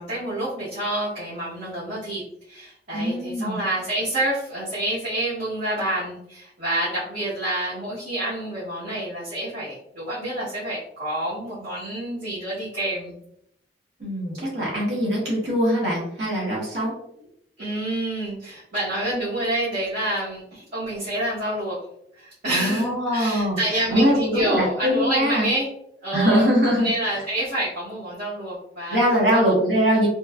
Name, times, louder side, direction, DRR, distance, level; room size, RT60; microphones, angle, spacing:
voice 1, 0.0-2.2 2.5-13.2 17.6-21.8 22.2-25.7 26.0-29.0 29.3-29.5, right 1 dB, 50° right, -10 dB, 1.0 m, -28 dB
voice 2, 2.9-3.6 14.0-16.9 22.5-25.5 26.1-26.9 28.9-30.1, equal, 70° right, -5 dB, 1.0 m, -22 dB
3.0 x 2.3 x 2.3 m, 0.74 s
head